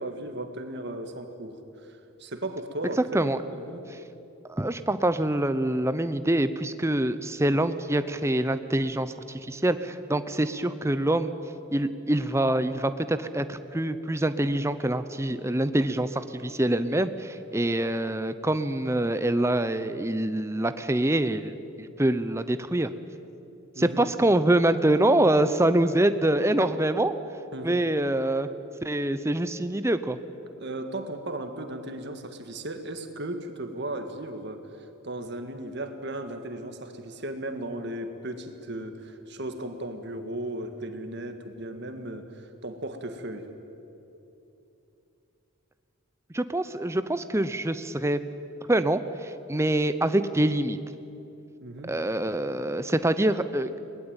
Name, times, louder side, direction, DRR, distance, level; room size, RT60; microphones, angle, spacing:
voice 1, 0.0-3.8 23.8-24.2 27.5-27.8 30.6-43.5 51.6-52.0, right 1 dB, 50° right, 7 dB, 1.8 m, -36 dB
voice 2, 4.5-11.3 11.7-22.9 23.8-27.1 27.6-28.5 28.8-30.2 46.3-48.2 48.7-50.8 51.9-53.8, right 1 dB, 10° right, 11 dB, 0.6 m, -25 dB
22.5 x 19.0 x 8.9 m, 2.9 s
head